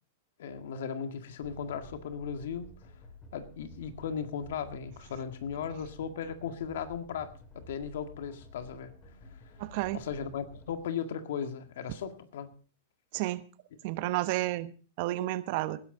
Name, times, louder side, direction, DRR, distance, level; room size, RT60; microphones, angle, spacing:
voice 1, 0.4-2.7 3.3-9.0 9.9-12.5, left 7 dB, 75° left, 8 dB, 1.9 m, -37 dB
sound 1, 1.4-10.8, equal, 20° left, 5.3 m, -53 dB
voice 2, 9.6-10.0 13.1-13.4 13.8-15.8, right 17 dB, 50° right, 13 dB, 1.1 m, -31 dB
19.5 x 11.5 x 3.9 m, 0.38 s
supercardioid pair, 140°, 0 cm